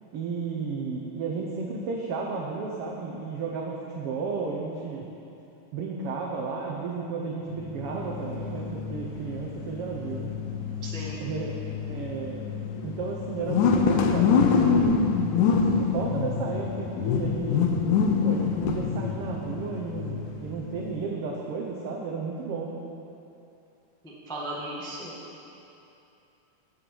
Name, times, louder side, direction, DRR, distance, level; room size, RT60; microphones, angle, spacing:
voice 1, 0.1-5.1 5.7-10.3 11.2-11.5 11.9-12.5 12.8-15.0 15.5-17.6 18.2-22.7, right 4 dB, 80° right, -1 dB, 1.3 m, -33 dB
sound 1, 7.6-21.0, left 5 dB, 80° left, 2.1 m, -26 dB
voice 2, 10.8-11.2 24.0-25.1, right 1 dB, 5° left, -6 dB, 0.4 m, -36 dB
9.9 x 9.0 x 5.4 m, 2.8 s
omnidirectional pair, 3.6 m